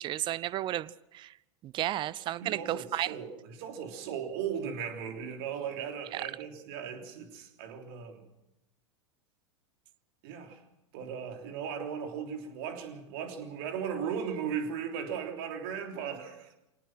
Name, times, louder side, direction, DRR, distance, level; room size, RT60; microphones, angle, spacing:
voice 1, 0.0-1.4 1.6-3.2 6.1-6.3, right 13 dB, 30° right, 0.7 m, -33 dB
voice 2, 2.4-3.3 3.6-8.2 10.2-10.6 10.9-16.6, right 7 dB, 50° right, 3.4 m, -37 dB
25.5 x 18.5 x 6.2 m
figure-of-eight pair, 90°, 16 cm